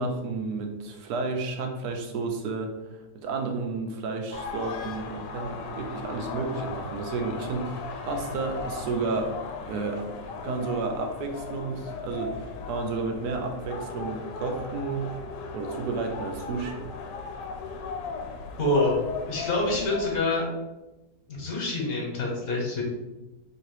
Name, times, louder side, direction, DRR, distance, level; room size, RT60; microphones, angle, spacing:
voice 1, 0.0-2.7 3.1-9.4 9.7-10.0 10.4-15.1 15.5-16.9, right 3 dB, 75° right, 4 dB, 1.1 m, -31 dB
sound 1, 4.3-20.2, left 4 dB, 85° left, 1.2 m, -37 dB
voice 2, 18.6-19.0 19.3-20.5 21.3-22.8, left 2 dB, 55° left, -2 dB, 1.3 m, -26 dB
3.2 x 2.8 x 4.5 m, 1.0 s
omnidirectional pair, 1.9 m